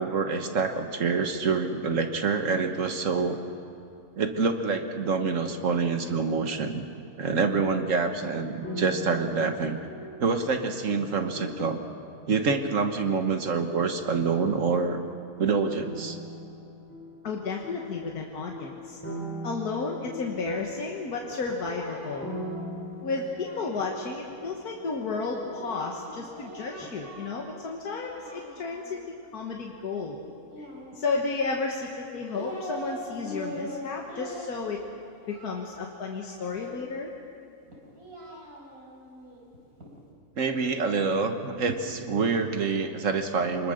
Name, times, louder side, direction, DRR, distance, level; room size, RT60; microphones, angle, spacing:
voice 1, 0.0-3.4 4.2-6.8 7.2-9.8 10.2-11.8 12.3-15.0 15.4-16.2 40.4-43.7, right 4 dB, 60° right, 6 dB, 1.7 m, -26 dB
sound 1, 7.6-14.1 14.4-15.2 15.8-26.4 26.8-26.9, equal, 10° left, 3.7 m, -41 dB
voice 2, 17.2-19.0 19.4-22.3 23.0-29.0 29.3-30.2 31.0-34.8 35.3-37.1, left 4 dB, 85° left, 0 dB, 1.9 m, -32 dB
Singing, 21.1-24.4 25.5-27.5 27.8-29.1 30.5-31.4 32.0-33.0 33.2-36.9 37.7-39.9, equal, 75° right, 4.8 m, -43 dB
25.5 x 21.0 x 6.6 m, 2.5 s
omnidirectional pair, 1.6 m